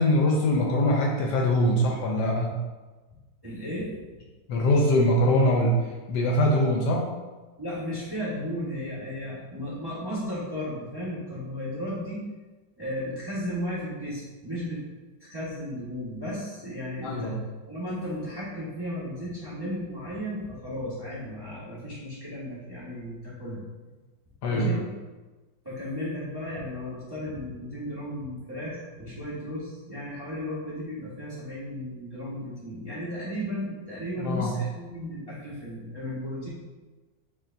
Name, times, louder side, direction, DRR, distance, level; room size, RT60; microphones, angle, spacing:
voice 1, 0.0-2.6 4.5-5.8 6.1-7.1 17.0-17.4 24.4-24.9 34.2-34.6, left 1 dB, 70° left, -1 dB, 1.1 m, -23 dB
voice 2, 3.4-3.9 7.6-12.2 12.8-14.8 15.2-17.4 17.7-23.6 24.5-24.8 25.6-36.5, equal, 15° right, -9 dB, 0.9 m, -34 dB
6.6 x 3.1 x 2.6 m, 1.3 s
omnidirectional pair, 2.0 m